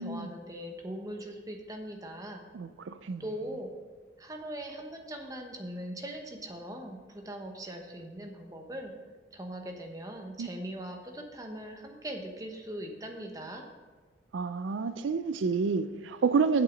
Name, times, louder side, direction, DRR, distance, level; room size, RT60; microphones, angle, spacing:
voice 1, 0.0-2.4 3.2-3.7 4.2-8.9 9.3-13.6, right 1 dB, 20° right, 1.0 m, -40 dB
voice 2, 2.5-3.2 10.4-10.5 14.3-16.6, right 5 dB, 85° right, 0.4 m, -29 dB
8.3 x 7.6 x 5.1 m
head